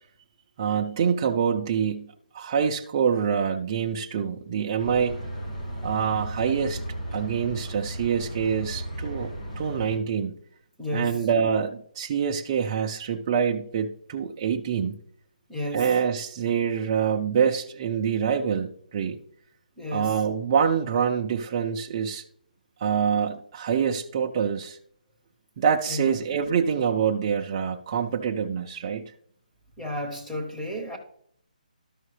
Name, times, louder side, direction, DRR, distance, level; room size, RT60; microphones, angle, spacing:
voice 1, 0.6-2.1 2.3-5.2 5.8-6.8 7.1-9.3 9.6-10.3 10.9-15.0 15.7-19.2 19.9-22.2 22.8-24.8 25.6-29.0, right 7 dB, 25° right, 0.4 m, -25 dB
sound 1, 4.8-10.0, right 1 dB, 50° left, 2.2 m, -35 dB
voice 2, 10.8-11.2 15.5-15.9 19.8-20.2 25.9-26.1 29.8-31.0, left 1 dB, 5° left, 0.8 m, -32 dB
12.5 x 5.5 x 3.2 m
hypercardioid pair, 165°, 5 cm